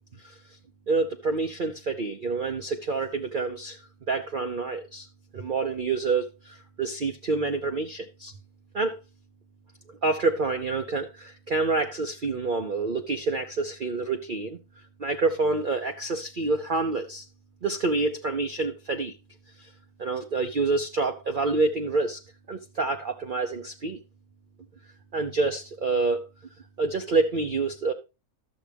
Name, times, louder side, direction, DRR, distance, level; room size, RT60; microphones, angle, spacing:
voice 1, 0.9-3.8 4.1-5.1 5.3-8.3 8.7-9.0 10.0-14.6 15.0-17.3 17.6-19.1 19.6-19.7 20.0-22.2 22.5-24.0 25.1-26.3 26.8-27.9, right 3 dB, 45° right, 0.7 m, -27 dB
12.5 x 7.2 x 3.5 m
omnidirectional pair, 1.6 m